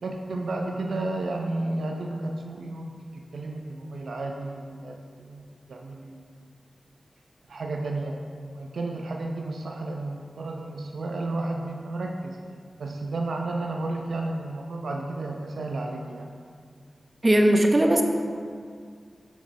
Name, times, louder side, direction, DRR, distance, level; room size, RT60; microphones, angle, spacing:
voice 1, 0.0-6.4 7.5-8.2 8.5-12.4 12.8-16.3, right 2 dB, 90° right, 2 dB, 0.3 m, -32 dB
voice 2, 17.2-18.0, right 1 dB, 40° right, 3 dB, 0.6 m, -18 dB
6.5 x 5.9 x 2.6 m, 2.1 s
cardioid pair, 45°, 0 cm